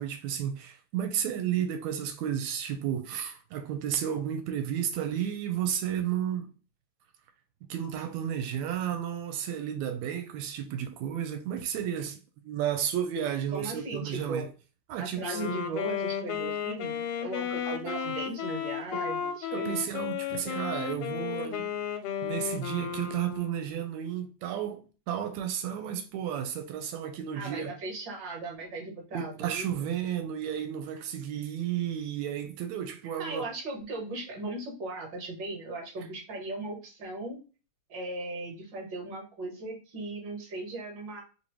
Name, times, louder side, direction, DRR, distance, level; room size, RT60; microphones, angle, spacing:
voice 1, 0.0-6.5 7.7-12.2 12.4-14.5 14.9-15.6 17.5-18.1 18.9-19.0 19.5-21.8 22.2-27.7 29.1-33.5, right 9 dB, 80° right, 1.8 m, -32 dB
voice 2, 13.5-14.5 15.0-19.8 27.3-29.9 33.2-37.4 37.9-41.2, right 2 dB, 50° right, 1.5 m, -37 dB
Wind instrument woodwind instrument, 15.2-23.9, left 8 dB, 85° left, 2.0 m, -34 dB
4.4 x 2.8 x 3.0 m
omnidirectional pair, 3.4 m